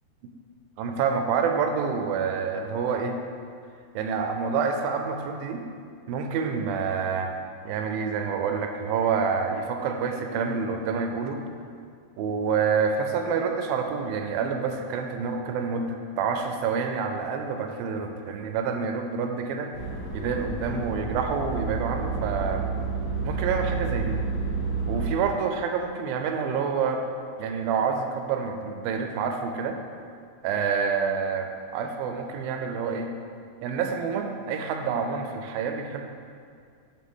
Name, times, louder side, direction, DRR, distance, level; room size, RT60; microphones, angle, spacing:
voice 1, 0.8-3.2 3.9-5.6 6.1-7.4 7.7-11.5 12.2-19.7 20.1-22.7 23.2-24.2 24.9-27.0 27.4-29.8 30.4-33.1 33.6-36.1, right 5 dB, 80° right, 4 dB, 2.3 m, -27 dB
sound 1, 19.7-25.1, right 4 dB, 55° left, 2.6 m, -30 dB
10.0 x 5.9 x 3.6 m, 2.2 s
omnidirectional pair, 4.3 m